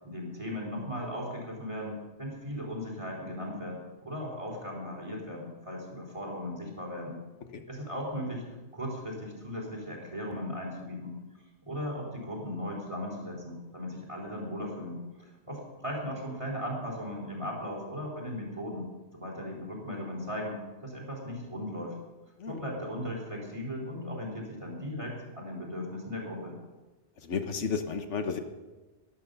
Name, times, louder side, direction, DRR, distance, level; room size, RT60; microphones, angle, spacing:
voice 1, 0.0-7.1 7.7-8.4 8.7-11.1 11.6-15.0 15.5-18.9 19.1-20.6 20.8-21.9 22.5-26.6, left 1 dB, 25° right, -2 dB, 4.1 m, -37 dB
voice 2, 27.2-28.4, left 5 dB, 85° left, 7 dB, 1.5 m, -32 dB
12.5 x 11.5 x 6.9 m, 1.2 s
omnidirectional pair, 1.2 m